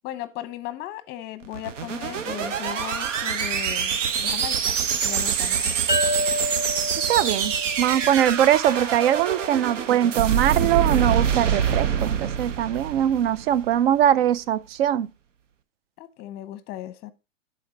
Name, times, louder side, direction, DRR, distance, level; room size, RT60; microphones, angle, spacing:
voice 1, 0.0-4.8 5.0-5.8 16.0-17.1, left 13 dB, 25° left, 0.8 m, -36 dB
sound 1, 1.4-13.8, right 7 dB, 75° right, 0.9 m, -25 dB
sound 2, 5.9-9.3, equal, 10° right, 1.0 m, -30 dB
voice 2, 7.1-7.5 7.8-15.1, right 11 dB, 55° right, 0.6 m, -21 dB
11.5 x 4.4 x 3.9 m
hypercardioid pair, 125°, 37 cm